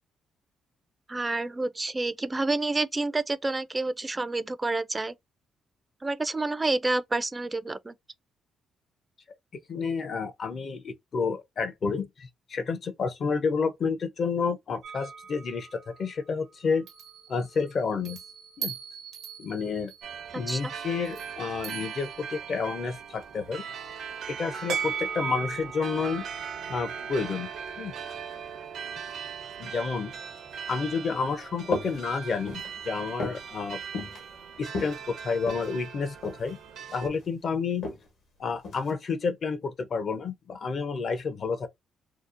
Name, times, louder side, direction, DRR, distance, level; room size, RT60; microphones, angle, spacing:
voice 1, 1.1-5.1 6.0-8.0 20.3-20.6, right 2 dB, 20° right, 0.3 m, -29 dB
voice 2, 9.5-16.9 17.3-18.2 18.6-18.7 19.4-19.9 20.3-23.6 24.3-26.3 26.7-27.5 27.8-27.9 29.6-30.1 30.7-33.8 34.6-36.6 36.9-37.9 38.4-41.7, left 5 dB, 55° left, 0.6 m, -30 dB
sound 1, 14.8-16.1 16.9-22.7 24.7-27.5, right 7 dB, 85° right, 0.9 m, -39 dB
sound 2, 20.0-37.1, right 7 dB, 70° right, 0.6 m, -40 dB
sound 3, 31.7-32.0 32.3-32.7 33.2-33.5 33.9-34.2 34.6-35.7 36.2-36.5 36.8-37.3 37.8-38.0 38.6-38.9, left 3 dB, 70° left, 1.0 m, -34 dB
2.7 x 2.0 x 2.5 m
supercardioid pair, 70°, 0 cm